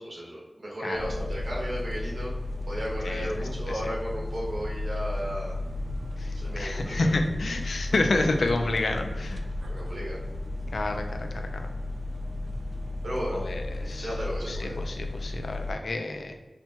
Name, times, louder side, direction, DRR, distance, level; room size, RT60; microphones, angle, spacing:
voice 1, 0.0-2.3 2.7-5.5 6.3-7.1 9.7-10.2 13.0-13.4 13.9-14.8, equal, 90° right, -4 dB, 1.3 m, -34 dB
voice 2, 0.8-1.1 3.0-3.8 6.2-9.4 10.7-11.6 13.3-14.1 14.5-16.3, left 2 dB, 90° left, 5 dB, 0.4 m, -29 dB
sound 1, 0.9-15.7, left 2 dB, 70° right, 0.4 m, -34 dB
5.7 x 2.2 x 2.9 m, 1.2 s
wide cardioid pair, 55°, 0 cm